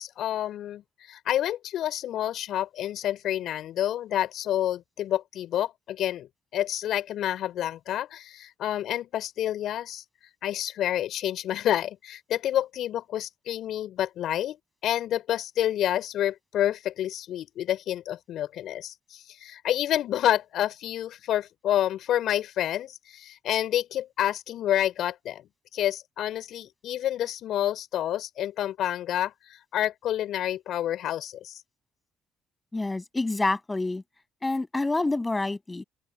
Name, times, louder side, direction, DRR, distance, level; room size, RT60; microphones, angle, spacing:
voice 1, 0.0-10.0 10.4-14.6 14.8-25.4 25.7-31.6, left 12 dB, 65° left, 4.8 m, -29 dB
voice 2, 32.7-34.0 34.4-35.8, left 2 dB, 20° left, 6.8 m, -27 dB
open air
hypercardioid pair, 45°, 0 cm